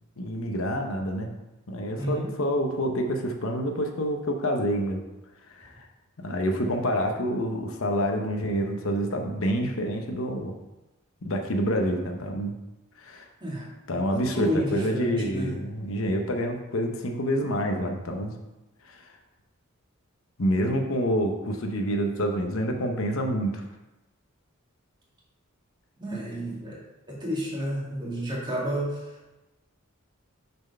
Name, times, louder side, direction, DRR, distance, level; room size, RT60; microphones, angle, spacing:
voice 1, 0.2-1.3 1.7-5.0 5.5-5.8 6.2-10.5 11.2-12.5 13.0-13.3 13.9-18.3 18.8-19.1 20.4-23.6, equal, 70° left, 3 dB, 0.9 m, -27 dB
voice 2, 2.0-2.3 13.4-13.7 14.1-15.5 26.0-26.8 27.1-29.0, equal, 20° right, -5 dB, 2.2 m, -30 dB
6.5 x 4.5 x 5.5 m, 1.0 s
head